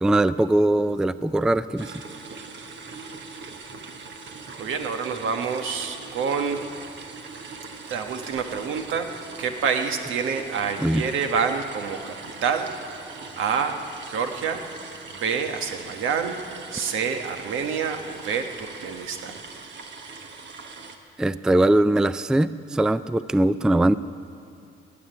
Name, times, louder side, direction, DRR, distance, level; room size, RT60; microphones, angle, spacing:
voice 1, 0.0-1.9 10.8-11.0 21.2-24.0, right 1 dB, 5° right, 15 dB, 0.3 m, -21 dB
sound 1, 1.8-21.0, right 4 dB, 65° right, 1.3 m, -41 dB
voice 2, 4.6-6.6 7.9-9.1 9.4-12.1 12.4-12.7 13.4-13.8 14.1-14.6 15.1-16.4 16.7-19.4, right 6 dB, 80° right, 5 dB, 1.3 m, -27 dB
18.5 x 7.3 x 9.7 m, 2.5 s
cardioid pair, 90°, 20 cm